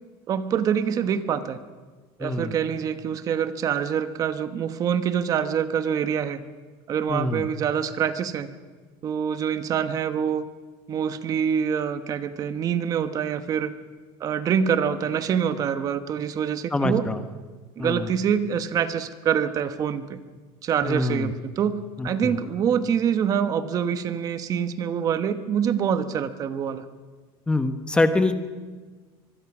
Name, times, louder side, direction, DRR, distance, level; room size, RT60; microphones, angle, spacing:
voice 1, 0.3-1.6 2.2-6.4 6.9-8.5 9.0-10.5 10.9-13.8 14.2-17.1 17.8-20.2 20.6-26.8, right 8 dB, 30° right, 10 dB, 1.1 m, -25 dB
voice 2, 2.2-2.5 7.1-7.5 16.7-17.2 17.8-18.1 20.8-21.3 22.0-22.4 27.5-28.3, left 2 dB, 10° left, 8 dB, 1.1 m, -25 dB
24.0 x 22.0 x 6.1 m, 1.4 s
cardioid pair, 170°, 12 cm